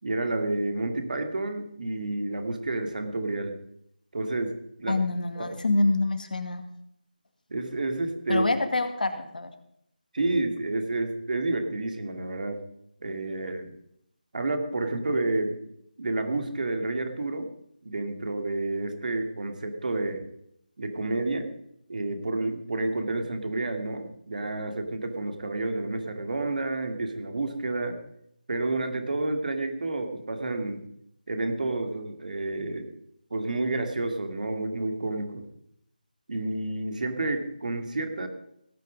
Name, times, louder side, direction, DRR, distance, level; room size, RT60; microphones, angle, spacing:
voice 1, 0.0-3.5 4.1-5.0 5.4-5.6 7.5-8.5 10.1-12.6 13.0-13.8 14.3-15.6 16.0-17.5 17.8-20.2 20.8-21.5 21.9-28.0 28.5-30.8 31.3-32.9 33.3-35.4 36.3-38.3, right 2 dB, 60° right, 5 dB, 2.4 m, -30 dB
voice 2, 4.9-6.6 8.3-9.5, left 2 dB, 65° left, 7 dB, 2.1 m, -26 dB
18.0 x 9.3 x 5.3 m, 0.75 s
figure-of-eight pair, 165°, 5 cm